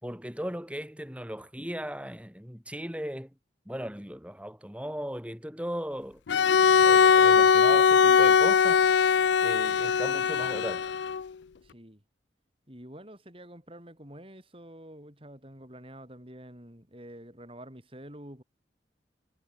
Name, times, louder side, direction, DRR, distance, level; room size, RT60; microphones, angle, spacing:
voice 1, 0.0-3.3 3.7-6.2 6.8-8.8 9.4-10.9, equal, 5° right, 6.7 m, -37 dB
Bowed string instrument, 6.3-11.3, left 6 dB, 75° left, 0.4 m, -21 dB
voice 2, 11.6-12.0 12.7-18.4, right 1 dB, 30° right, 6.9 m, -47 dB
head